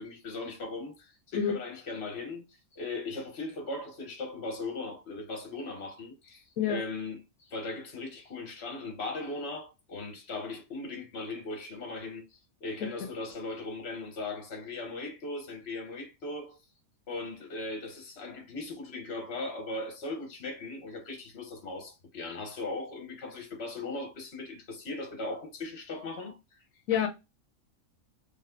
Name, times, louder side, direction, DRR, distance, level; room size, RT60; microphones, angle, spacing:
voice 1, 0.0-2.4 2.7-16.6 17.1-26.6 26.9-27.1, left 3 dB, 50° left, 1.3 m, -38 dB
voice 2, 1.3-1.6 6.6-6.8 26.9-27.1, left 8 dB, 85° left, 1.1 m, -27 dB
4.0 x 3.3 x 2.6 m
omnidirectional pair, 1.4 m